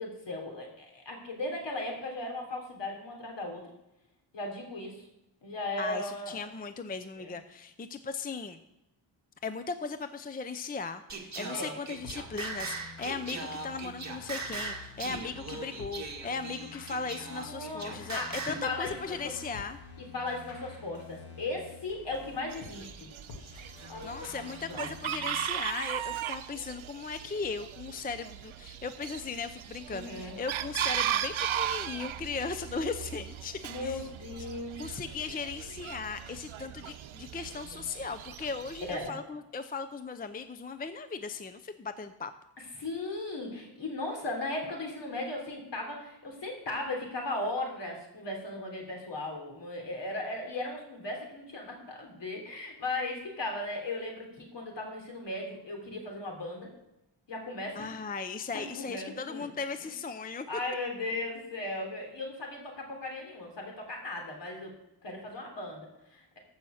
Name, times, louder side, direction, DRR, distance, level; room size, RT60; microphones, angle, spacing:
voice 1, 0.0-3.7 4.3-5.0 5.4-6.4 7.2-7.3 11.5-11.7 17.3-18.3 18.6-19.3 20.1-23.1 23.9-24.3 24.7-24.9 29.9-30.3 33.6-34.9 38.9-39.2 42.8-56.7 57.3-57.9 58.5-59.5 60.5-64.7 65.0-66.4, left 2 dB, 60° left, 2 dB, 3.4 m, -37 dB
voice 2, 5.8-8.6 9.4-19.8 23.8-34.0 34.8-42.3 57.8-60.6, left 4 dB, 20° left, 10 dB, 0.5 m, -37 dB
Singing, 11.1-18.7, right 4 dB, 35° right, 1.9 m, -39 dB
sound 1, 11.9-25.4, left 4 dB, 80° left, 2.1 m, -49 dB
Chicken rooster, 22.5-39.1, right 10 dB, 75° right, 0.8 m, -37 dB
15.0 x 5.6 x 6.4 m, 0.89 s
wide cardioid pair, 130°, 48 cm